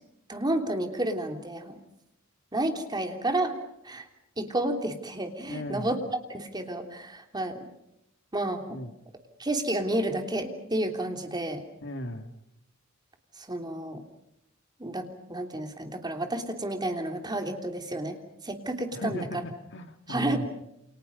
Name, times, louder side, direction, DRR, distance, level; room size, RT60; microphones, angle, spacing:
voice 1, 0.3-1.8 2.5-3.5 3.8-4.1 4.4-6.0 6.3-7.7 8.3-8.8 9.4-11.7 13.4-14.0 14.8-18.2 18.4-19.2 20.1-20.5, right 1 dB, 20° right, 5 dB, 3.2 m, -31 dB
voice 2, 5.5-5.9 8.7-8.9 11.8-12.3 18.9-20.5, left 1 dB, 60° left, 7 dB, 2.4 m, -36 dB
29.5 x 28.5 x 5.4 m, 0.82 s
head